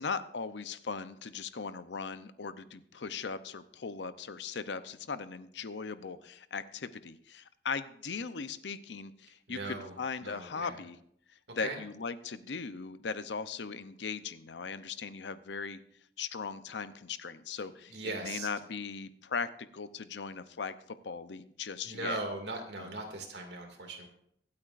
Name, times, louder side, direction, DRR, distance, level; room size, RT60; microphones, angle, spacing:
voice 1, 0.0-11.0 11.5-15.8 16.2-22.2 22.8-22.9, left 5 dB, 80° left, 13 dB, 0.7 m, -39 dB
voice 2, 9.5-9.9 10.2-10.8 11.6-11.8 17.9-18.5 21.8-24.1, right 2 dB, 75° right, 3 dB, 2.3 m, -39 dB
24.5 x 8.6 x 2.5 m, 0.68 s
head